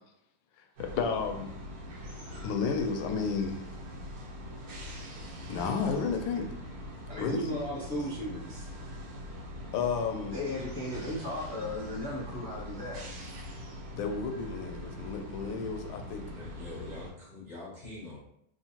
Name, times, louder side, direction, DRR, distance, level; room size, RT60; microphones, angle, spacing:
sound 1, 0.8-17.1, left 1 dB, 85° right, 1.8 m, -43 dB
voice 1, 0.9-1.5 2.4-3.6 5.5-6.5 7.2-7.6 9.7-10.3 13.9-16.2, left 5 dB, 75° left, 5 dB, 1.2 m, -32 dB
voice 2, 7.1-8.7 10.3-13.0, left 1 dB, 25° right, -6 dB, 1.3 m, -35 dB
voice 3, 16.3-18.2, left 2 dB, 50° left, -8 dB, 0.5 m, -44 dB
3.7 x 3.1 x 2.8 m, 0.73 s
omnidirectional pair, 2.3 m